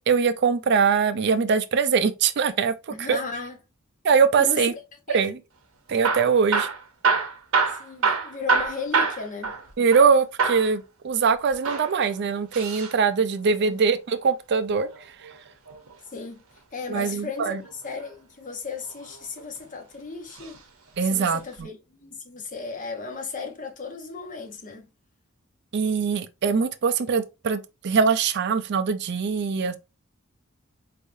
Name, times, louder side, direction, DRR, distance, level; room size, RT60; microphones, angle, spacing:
voice 1, 0.1-2.7 3.0-3.2 4.0-4.7 5.1-5.4 5.9-6.7 9.8-14.9 16.9-17.6 21.0-21.7 25.7-29.8, right 5 dB, 50° right, 0.4 m, -22 dB
voice 2, 2.9-3.6 4.4-4.6 5.1-5.3 7.8-9.6 13.6-13.8 16.1-16.4 16.7-20.6 21.0-24.9, left 4 dB, 40° left, 0.9 m, -35 dB
Hammer / Drill, 5.9-10.1 10.4-10.7 11.5-12.9 14.7-15.9 17.6-18.1 18.8-19.6 20.3-20.6 20.9-21.0 21.6-21.7, right 4 dB, 80° right, 1.0 m, -26 dB
4.5 x 3.4 x 2.6 m
head